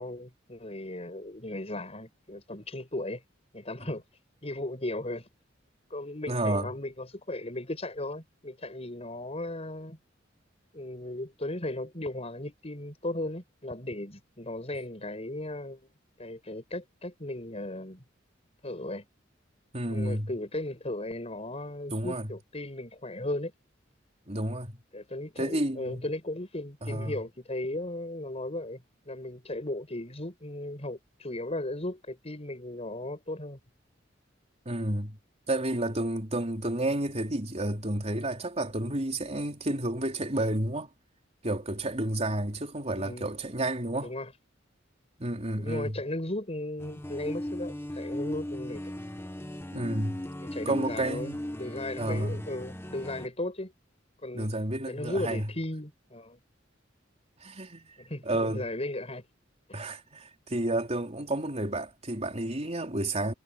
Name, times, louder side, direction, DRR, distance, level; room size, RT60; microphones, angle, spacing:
voice 1, 0.0-3.2 3.5-4.0 4.4-5.3 5.9-10.0 10.7-15.9 16.2-18.0 18.6-19.0 19.9-23.5 24.9-28.8 29.1-33.6 42.9-43.3 44.0-44.3 45.6-48.8 50.4-53.7 54.2-54.5 54.9-56.4 58.0-59.2 59.7-59.8, left 1 dB, 35° left, 6.3 m, -36 dB
voice 2, 6.3-6.7 19.7-20.3 21.9-22.3 24.3-24.8 25.4-26.1 26.8-27.2 34.7-35.2 35.5-40.9 41.4-44.1 45.2-46.0 49.7-50.2 50.7-51.4 52.0-52.4 54.3-55.5 57.4-57.9 58.2-58.6 59.7-63.3, right 1 dB, 35° right, 4.1 m, -31 dB
sound 1, 46.8-53.3, left 1 dB, 15° left, 1.1 m, -37 dB
head